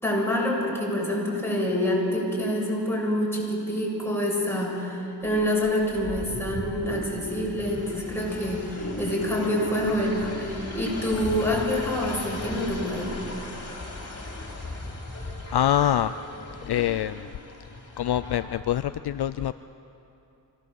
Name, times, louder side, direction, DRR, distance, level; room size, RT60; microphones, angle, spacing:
voice 1, 0.0-13.1, left 1 dB, 5° left, -4 dB, 7.7 m, -27 dB
sound 1, 5.2-18.4, left 2 dB, 35° left, 4.3 m, -37 dB
voice 2, 15.5-16.1 16.7-17.3 18.0-19.5, left 11 dB, 65° left, 13 dB, 0.5 m, -25 dB
25.5 x 17.5 x 7.7 m, 2.8 s
cardioid pair, 65°, 42 cm